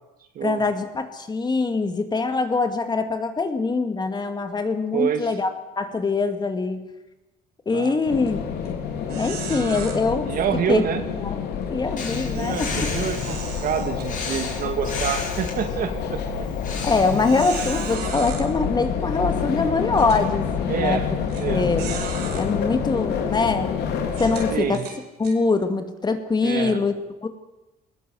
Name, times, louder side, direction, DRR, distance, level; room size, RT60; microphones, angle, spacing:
voice 1, 0.4-5.5 5.8-6.9 7.7-8.4 9.1-10.3 10.7-10.8 11.2-11.4 11.7-12.7 16.8-21.1 21.5-22.0 22.3-23.8 24.2-24.8 25.2-26.9 27.2-27.3, left 3 dB, 25° left, 7 dB, 2.4 m, -23 dB
voice 2, 4.9-5.3 7.7-8.0 10.3-11.0 12.4-16.5 20.7-21.1 21.4-22.0 24.5-24.8 26.4-26.8, right 8 dB, 60° right, 7 dB, 2.7 m, -27 dB
sound 1, 8.0-24.5, left 7 dB, 75° left, 3.7 m, -28 dB
sound 2, 8.0-8.3 8.6-8.7 9.1-9.9 12.3-14.6 15.1-15.3 15.9-16.0 17.0-18.4 19.3-19.4 19.9-20.2 21.3-21.4 21.8-22.4 23.1-23.3 24.1-25.4, right 7 dB, 75° right, 5.2 m, -37 dB
Breathing, 12.0-18.0, left 3 dB, 50° left, 7.2 m, -33 dB
20.0 x 20.0 x 7.9 m, 0.99 s
cardioid pair, 110°, 17 cm